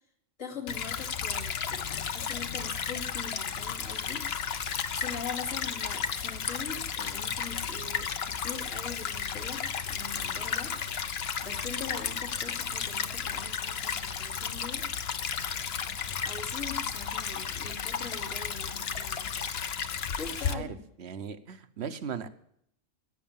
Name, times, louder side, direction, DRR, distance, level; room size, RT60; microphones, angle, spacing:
voice 1, 0.4-11.1 11.4-14.9 16.2-19.2 20.1-20.8, left 5 dB, 80° left, -2 dB, 3.0 m, -42 dB
Stream / Trickle dribble, 0.7-20.5, left 7 dB, 55° left, 1.0 m, -33 dB
voice 2, 21.0-22.3, right 7 dB, 60° right, 12 dB, 1.1 m, -37 dB
16.0 x 8.2 x 7.3 m, 0.71 s
omnidirectional pair, 1.3 m